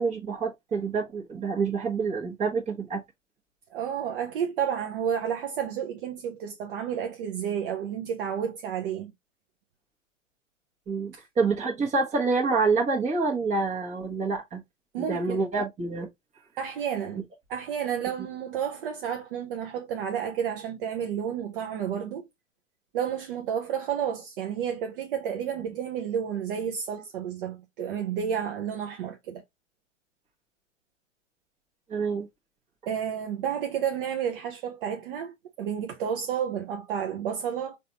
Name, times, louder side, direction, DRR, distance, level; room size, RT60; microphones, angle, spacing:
voice 1, 0.0-3.0 10.9-14.6 15.0-16.1 31.9-32.3, right 4 dB, 20° right, 1.3 m, -27 dB
voice 2, 3.7-9.1 11.1-11.2 14.9-15.4 16.6-17.2 17.5-22.3 22.9-29.4 32.9-37.8, right 8 dB, 45° right, 0.7 m, -31 dB
4.0 x 2.7 x 2.9 m
figure-of-eight pair, 110°, 39 cm